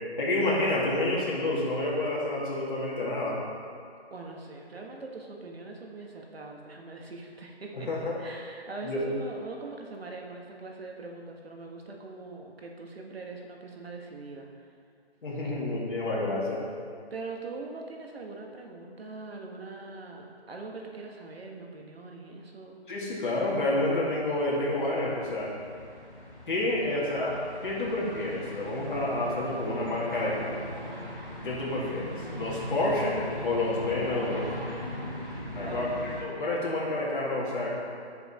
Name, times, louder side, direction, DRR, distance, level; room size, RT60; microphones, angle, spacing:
voice 1, 0.2-3.4 7.7-8.2 8.8-9.1 15.2-16.6 22.9-25.5 26.5-27.3 27.6-30.5 31.4-33.2 33.4-34.5 35.6-35.9 36.2-37.8, left 2 dB, 50° left, -6 dB, 2.4 m, -29 dB
voice 2, 4.1-14.5 17.1-22.8 26.9-27.0 35.6-36.0, right 3 dB, 65° right, 0 dB, 1.6 m, -42 dB
sound 1, 23.1-36.2, left 1 dB, 5° right, 2.1 m, -40 dB
10.5 x 6.9 x 4.3 m, 2.3 s
figure-of-eight pair, 160°, 33 cm